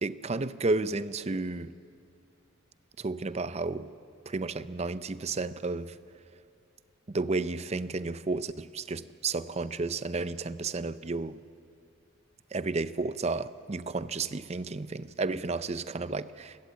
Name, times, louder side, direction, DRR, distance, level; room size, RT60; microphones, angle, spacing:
voice 1, 0.0-1.7 3.0-3.9 4.3-5.9 7.1-11.4 12.5-16.6, right 3 dB, 30° right, 14 dB, 0.5 m, -32 dB
29.0 x 14.5 x 8.3 m, 2.5 s
head